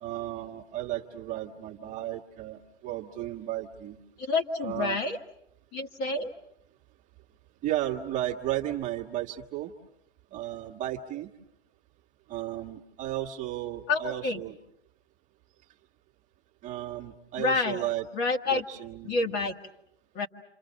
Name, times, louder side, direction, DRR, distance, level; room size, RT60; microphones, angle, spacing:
voice 1, 0.0-4.0 4.6-5.0 7.6-9.7 10.3-11.3 12.3-14.6 16.6-18.1 18.5-19.5, right 14 dB, 25° right, 0 dB, 1.6 m, -34 dB
voice 2, 4.2-5.2 5.7-6.3 13.9-14.4 17.4-17.8 18.1-18.6 19.0-19.6 20.1-20.3, left 3 dB, 30° left, 4 dB, 1.7 m, -28 dB
28.5 x 27.0 x 6.4 m, 0.76 s
hypercardioid pair, 125°, 32 cm